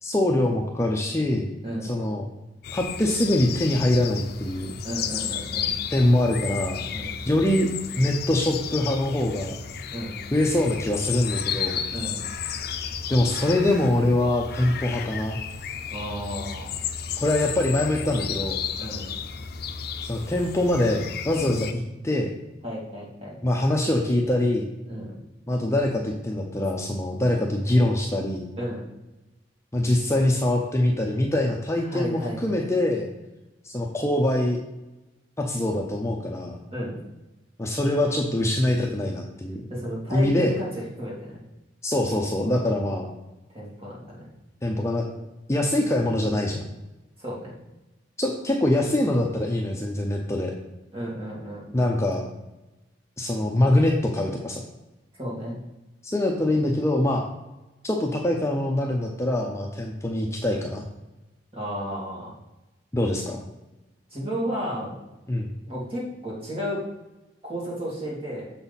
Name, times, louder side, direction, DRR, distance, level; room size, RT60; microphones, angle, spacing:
voice 1, 0.0-1.5 1.8-2.3 2.7-4.8 5.9-6.9 7.3-7.7 8.0-9.5 10.3-11.8 13.1-15.4 17.2-18.6 20.0-22.3 23.4-24.7 25.5-28.5 29.7-33.1 33.6-34.6 35.4-36.6 37.6-39.6 40.1-40.5 41.8-43.1 44.6-45.1 45.5-46.7 48.2-50.5 51.7-52.2 53.2-54.6 56.0-57.2 57.8-60.8 62.9-63.4 65.3-65.5, left 1 dB, 15° left, 1 dB, 0.6 m, -24 dB
sound 1, 2.6-21.7, left 7 dB, 60° left, 0.5 m, -33 dB
voice 2, 4.8-5.7 6.9-7.1 9.9-10.2 11.9-12.2 15.9-16.7 18.8-19.1 21.4-21.6 22.6-23.4 24.9-25.2 28.6-28.8 31.9-32.6 36.7-37.0 39.7-40.7 41.0-41.4 43.5-44.3 47.2-47.5 50.9-51.6 55.2-55.6 61.5-62.3 64.1-65.0 65.7-66.8 67.4-68.5, equal, 35° right, -5 dB, 2.7 m, -33 dB
6.9 x 5.6 x 4.1 m, 1.0 s
head